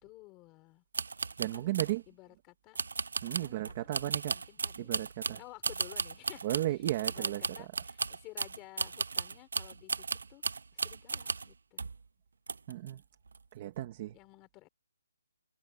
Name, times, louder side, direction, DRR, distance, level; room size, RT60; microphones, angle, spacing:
voice 1, 0.0-0.8 1.5-1.8 2.1-2.8 3.3-3.9 4.3-4.9 5.4-10.4 10.7-11.8 14.1-14.7, left 21 dB, 10° left, 5.0 m, -54 dB
sound 1, 0.9-2.0 2.7-11.5 11.8-12.0 12.5-12.9 13.3-13.4, right 4 dB, 70° right, 1.0 m, -36 dB
voice 2, 1.4-2.0 3.2-4.3 4.9-5.4 6.4-7.4 12.7-13.0 13.5-14.1, right 14 dB, 20° right, 1.3 m, -34 dB
hypercardioid pair, 180°, 0 cm